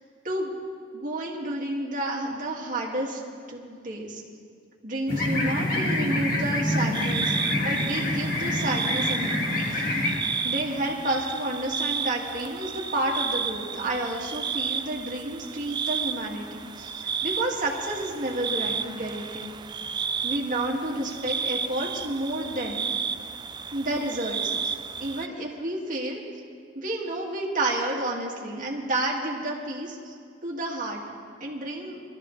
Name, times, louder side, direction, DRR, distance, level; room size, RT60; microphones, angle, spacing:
voice 1, 0.9-3.2 3.5-4.2 4.8-9.8 10.4-19.6 20.2-22.9 23.7-24.7 25.0-26.2 26.7-30.1 30.4-31.0 31.4-32.0, right 1 dB, 45° right, -2 dB, 2.2 m, -30 dB
sound 1, 5.1-10.2, left 1 dB, 50° left, 2.0 m, -26 dB
sound 2, 6.9-25.3, right 6 dB, 25° right, 0.3 m, -32 dB
22.5 x 13.5 x 3.3 m, 2.2 s
head